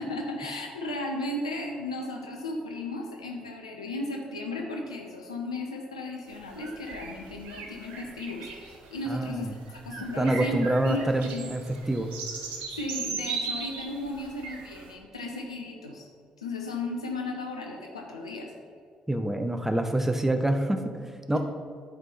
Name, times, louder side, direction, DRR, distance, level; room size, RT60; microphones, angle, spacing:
voice 1, 0.0-11.5 12.7-16.1 16.4-18.5, left 2 dB, 85° left, 1 dB, 0.7 m, -35 dB
sound 1, 6.3-14.9, right 4 dB, 70° right, 0.8 m, -38 dB
voice 2, 9.1-9.5 10.2-11.6 11.9-12.1 19.1-21.4, right 1 dB, 10° right, 7 dB, 0.8 m, -26 dB
10.5 x 4.5 x 4.3 m, 2.1 s
figure-of-eight pair, 40°, 3 cm